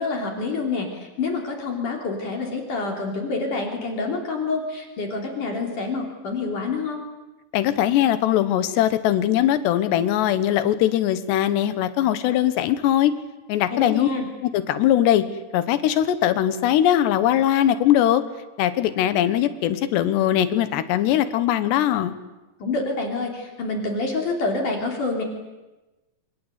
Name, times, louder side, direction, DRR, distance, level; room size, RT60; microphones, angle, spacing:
voice 1, 0.0-7.0 13.7-14.3 22.6-25.2, left 3 dB, 50° left, 1 dB, 4.5 m, -27 dB
voice 2, 7.5-13.1 13.5-14.1 14.4-15.2 15.5-18.2 18.6-22.2, left 11 dB, 80° left, 12 dB, 3.4 m, -20 dB
27.5 x 26.0 x 8.2 m, 1.1 s
omnidirectional pair, 4.9 m